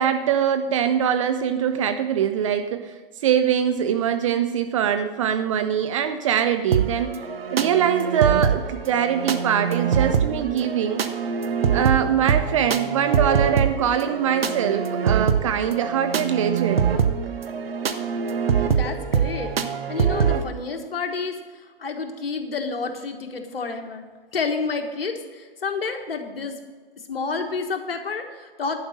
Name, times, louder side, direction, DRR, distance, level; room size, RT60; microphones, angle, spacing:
voice 1, 0.0-3.0 3.2-7.2 7.5-11.0 11.7-16.9, right 9 dB, 35° right, 10 dB, 0.5 m, -23 dB
sound 1, 6.7-20.4, right 7 dB, 85° right, 0.9 m, -24 dB
voice 2, 18.7-19.5 19.9-21.4 21.8-24.0 24.3-26.5 27.1-28.8, left 4 dB, 80° left, 5 dB, 1.5 m, -29 dB
11.0 x 5.1 x 7.2 m, 1.4 s
hypercardioid pair, 135°, 29 cm